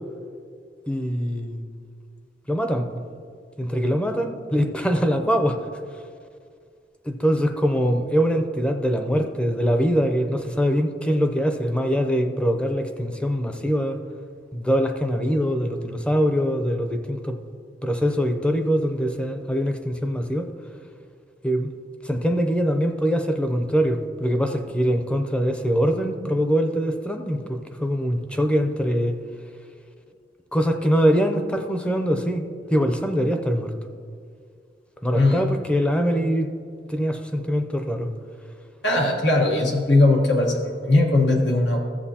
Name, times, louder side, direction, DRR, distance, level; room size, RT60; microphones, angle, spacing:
voice 1, 0.9-1.6 2.5-3.0 3.6-5.6 7.0-14.0 14.5-17.4 17.8-20.5 21.4-21.7 22.0-29.2 30.5-33.7 35.0-36.5 36.9-38.1, equal, 5° left, 6 dB, 0.6 m, -23 dB
voice 2, 38.8-41.8, left 2 dB, 85° left, 0 dB, 1.4 m, -19 dB
14.5 x 7.7 x 2.8 m, 2.2 s
head